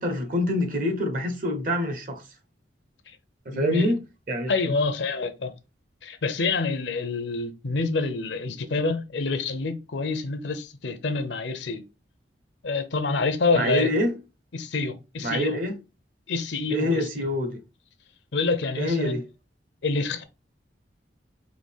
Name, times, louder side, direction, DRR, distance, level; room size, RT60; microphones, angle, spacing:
voice 1, 0.0-2.2 3.4-4.0 4.3-4.7 13.5-14.2 15.2-15.8 16.7-17.6 18.8-19.2, left 1 dB, 45° right, 0.9 m, -26 dB
voice 2, 3.5-3.9 4.5-5.5 6.0-11.8 12.6-13.9 14.5-15.6 16.3-17.0 18.3-19.1 19.8-20.2, left 3 dB, 70° left, 0.6 m, -27 dB
4.8 x 2.3 x 3.5 m
head